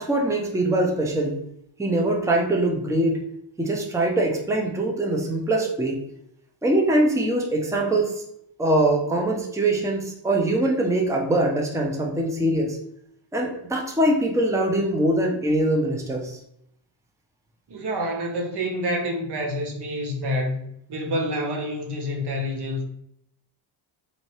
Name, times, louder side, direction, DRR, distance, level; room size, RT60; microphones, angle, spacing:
voice 1, 0.0-1.4 1.8-3.2 3.6-6.0 6.6-8.1 8.6-12.8 13.3-16.4, right 1 dB, 5° right, 0 dB, 0.7 m, -23 dB
voice 2, 17.7-20.6 20.9-22.8, equal, 55° right, 2 dB, 1.2 m, -27 dB
4.1 x 2.8 x 3.2 m, 0.73 s
cardioid pair, 100°, 48 cm